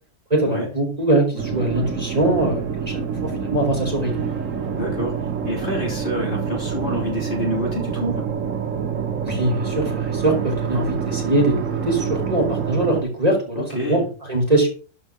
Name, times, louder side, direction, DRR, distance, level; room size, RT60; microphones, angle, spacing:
voice 1, 0.3-4.3 9.2-14.0 14.3-14.7, right 1 dB, 30° right, 0 dB, 4.0 m, -22 dB
sound 1, 1.4-13.0, right 7 dB, 80° right, 1.7 m, -27 dB
voice 2, 4.7-5.1 5.4-8.2 13.5-14.1, equal, 45° left, -1 dB, 4.4 m, -27 dB
12.5 x 5.7 x 6.2 m, 0.38 s
omnidirectional pair, 1.3 m